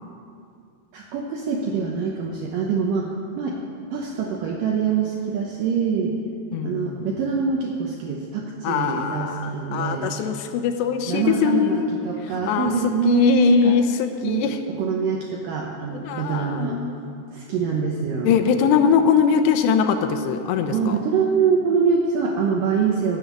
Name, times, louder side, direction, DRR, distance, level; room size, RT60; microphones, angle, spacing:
voice 1, 0.9-3.6 3.9-6.2 6.6-10.1 11.1-13.8 14.2-16.8 17.3-18.4 20.7-23.2, right 6 dB, 80° right, 0 dB, 2.0 m, -24 dB
voice 2, 6.5-7.1 8.6-12.0 12.5-12.7 13.1-14.6 16.0-16.9 18.2-21.0, left 7 dB, 85° left, 7 dB, 2.9 m, -22 dB
12.0 x 7.9 x 9.5 m, 2.4 s
omnidirectional pair, 5.0 m